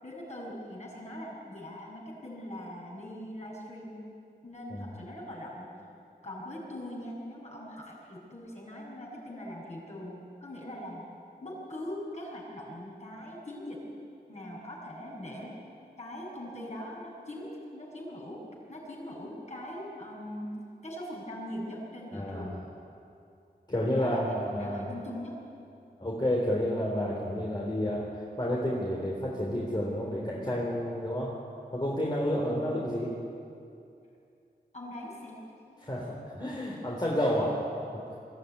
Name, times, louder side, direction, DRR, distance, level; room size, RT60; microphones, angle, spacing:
voice 1, 0.0-3.9 4.4-5.7 6.2-11.1 11.4-13.8 14.3-15.6 16.0-20.5 20.8-22.6 23.9-25.4 32.5-32.7 34.7-35.8, left 1 dB, 40° left, -4 dB, 7.3 m, -41 dB
voice 2, 22.1-22.6 23.7-24.9 26.0-31.3 31.7-33.1 35.8-37.6 37.9-38.2, equal, 25° left, -3 dB, 3.5 m, -30 dB
22.5 x 14.0 x 9.5 m, 2.6 s
wide cardioid pair, 85°, 17 cm